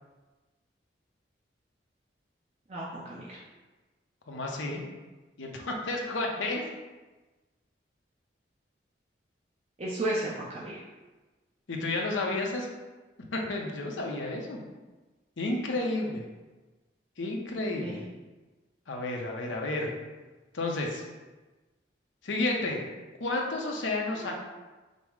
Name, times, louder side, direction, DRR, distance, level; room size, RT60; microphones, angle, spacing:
voice 1, 2.7-3.4 9.8-10.8 17.8-18.0 24.2-24.3, right 1 dB, 35° right, -5 dB, 0.6 m, -34 dB
voice 2, 4.3-4.8 5.4-6.6 11.7-12.7 13.2-14.6 15.4-16.2 17.2-18.0 18.9-19.9 20.5-21.0 22.2-22.8 23.2-24.3, left 2 dB, 90° left, 0 dB, 0.8 m, -31 dB
5.3 x 2.1 x 4.7 m, 1.2 s
head